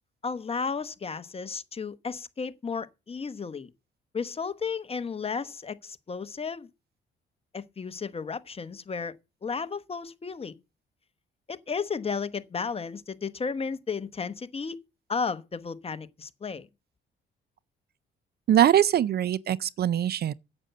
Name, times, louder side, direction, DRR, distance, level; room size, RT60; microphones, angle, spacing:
voice 1, 0.2-3.7 4.1-6.7 7.5-9.1 9.4-10.6 11.5-14.8 15.1-16.7, left 5 dB, 30° left, 0.9 m, -33 dB
voice 2, 18.5-20.3, right 11 dB, 55° right, 0.5 m, -22 dB
8.7 x 8.0 x 6.6 m
cardioid pair, 90°, 20 cm